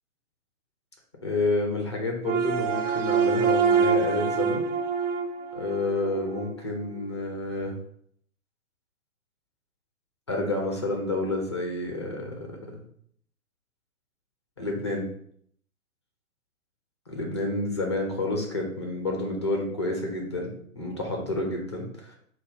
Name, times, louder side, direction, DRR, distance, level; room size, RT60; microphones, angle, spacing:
voice 1, 1.2-4.6 5.5-7.7 10.3-12.8 14.6-15.1 17.1-22.2, left 2 dB, 20° left, 1 dB, 0.4 m, -29 dB
sound 1, 2.2-6.5, right 6 dB, 60° right, 0.5 m, -25 dB
3.9 x 2.2 x 3.8 m, 0.65 s
figure-of-eight pair, 125°, 43 cm